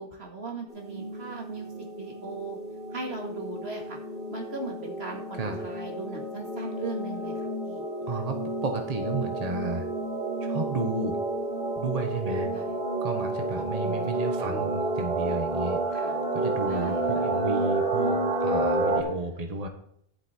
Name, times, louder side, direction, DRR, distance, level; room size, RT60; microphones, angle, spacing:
voice 1, 0.0-1.7 2.0-2.6 2.9-4.0 4.3-7.3 7.6-7.8 12.5-12.7 13.6-14.7 15.9-16.3 16.7-17.3 19.0-19.1 19.4-19.6, right 3 dB, 75° right, 1 dB, 2.3 m, -39 dB
sound 1, 0.7-19.0, right 2 dB, 35° left, 4.5 m, -30 dB
voice 2, 8.1-8.4 8.6-9.9 10.4-11.2 11.8-12.5 13.0-15.8 16.3-19.7, right 3 dB, 40° right, 5 dB, 1.3 m, -32 dB
11.5 x 8.2 x 4.4 m, 0.68 s
omnidirectional pair, 1.1 m